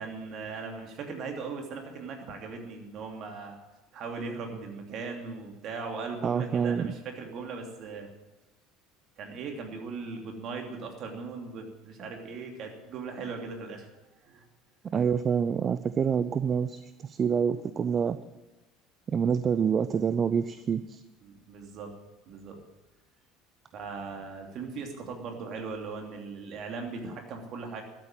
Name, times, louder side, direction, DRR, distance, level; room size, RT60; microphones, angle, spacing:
voice 1, 0.0-3.6 3.9-8.1 9.2-13.9 14.2-14.4 21.2-21.9 22.3-22.6 23.7-27.8, right 4 dB, 55° right, 2 dB, 2.9 m, -39 dB
voice 2, 6.2-6.9 14.9-18.2 19.1-21.0, right 7 dB, 40° right, 13 dB, 0.6 m, -27 dB
13.0 x 8.4 x 8.9 m, 1.1 s
hypercardioid pair, 70°, 0 cm